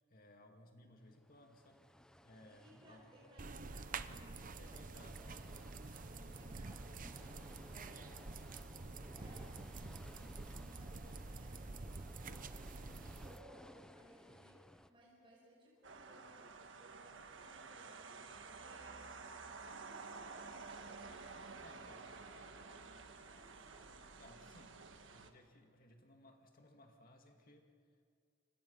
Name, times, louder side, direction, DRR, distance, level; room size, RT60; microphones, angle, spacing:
voice 1, 0.1-3.0 4.6-5.2 21.6-22.1 24.2-27.7, left 1 dB, 50° left, 3 dB, 2.2 m, -62 dB
sound 1, 1.0-14.9, equal, 5° left, 0.6 m, -60 dB
voice 2, 2.4-21.5 21.9-24.0, equal, 25° right, -4 dB, 5.5 m, -63 dB
sound 2, 3.4-13.4, right 3 dB, 45° right, 0.8 m, -48 dB
sound 3, 15.8-25.3, right 4 dB, 70° right, 1.5 m, -52 dB
29.5 x 25.0 x 5.5 m, 2.2 s
head